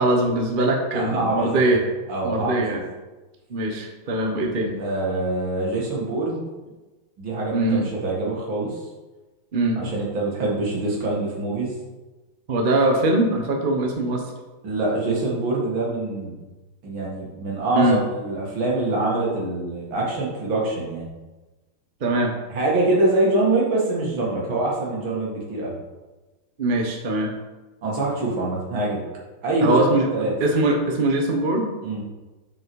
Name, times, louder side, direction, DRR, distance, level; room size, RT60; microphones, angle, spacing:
voice 1, 0.0-1.8 2.2-2.8 3.5-4.8 7.5-7.9 9.5-9.9 12.5-14.2 17.8-18.0 22.0-22.3 26.6-27.3 29.6-31.7, right 2 dB, 40° right, 2 dB, 0.8 m, -22 dB
voice 2, 0.9-1.5 2.1-2.8 4.8-6.4 7.2-8.8 9.8-11.7 14.6-16.3 16.8-21.1 22.5-25.7 27.8-29.0 29.4-29.8 30.1-30.3 31.8-32.0, right 2 dB, 65° right, -4 dB, 2.8 m, -24 dB
7.6 x 5.8 x 4.7 m, 1.2 s
omnidirectional pair, 2.4 m